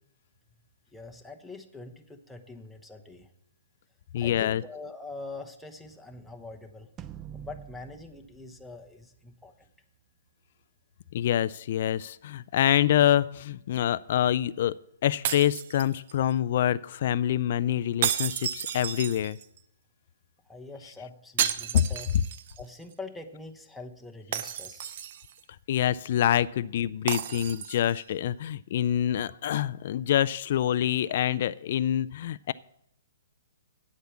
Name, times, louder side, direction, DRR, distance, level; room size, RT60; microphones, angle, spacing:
voice 1, 0.9-3.3 4.2-6.9 7.3-9.7 20.5-22.1 22.6-24.9, left 3 dB, 5° left, 2 dB, 0.9 m, -44 dB
voice 2, 4.1-4.6 11.1-14.8 15.0-19.4 25.7-32.5, left 11 dB, 50° left, 16 dB, 0.3 m, -26 dB
sound 1, 7.0-9.5, right 9 dB, 20° right, 0.4 m, -46 dB
sound 2, 15.2-16.3 18.0-19.6 21.4-22.6 22.9-23.0 24.3-25.4 27.1-28.0, right 9 dB, 50° right, 0.7 m, -32 dB
8.6 x 8.1 x 7.2 m, 0.73 s
hypercardioid pair, 145°, 0 cm